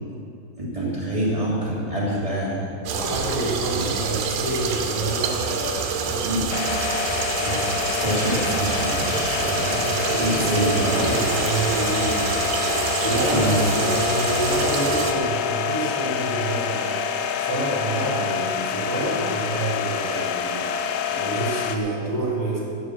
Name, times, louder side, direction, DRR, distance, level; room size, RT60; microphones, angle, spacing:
voice 1, 0.6-2.7 3.7-3.8 6.2-6.4 7.4-11.3 13.3-13.6, right 1 dB, 35° right, -8 dB, 0.5 m, -26 dB
voice 2, 2.9-6.3 10.1-12.3 13.0-16.9 17.4-20.6 21.1-22.6, right 2 dB, 5° left, -6 dB, 2.0 m, -28 dB
sound 1, 2.9-15.1, right 6 dB, 75° right, 3.0 m, -27 dB
Portable Compressor, 6.5-21.8, left 7 dB, 85° left, 3.2 m, -27 dB
12.5 x 10.0 x 6.2 m, 2.5 s
omnidirectional pair, 5.6 m